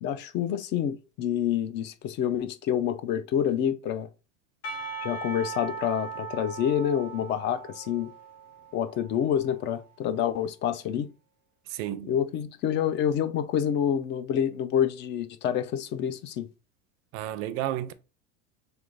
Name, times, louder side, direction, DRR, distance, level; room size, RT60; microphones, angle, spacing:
voice 1, 0.0-4.1 5.0-8.1 8.7-11.1 12.1-16.5, left 9 dB, 35° left, 0.5 m, -27 dB
Percussion / Church bell, 4.6-9.7, right 5 dB, 50° left, 1.8 m, -39 dB
voice 2, 11.7-12.2 17.1-17.9, right 12 dB, 45° right, 0.5 m, -32 dB
3.4 x 3.4 x 3.8 m
cardioid pair, 155°, 30 cm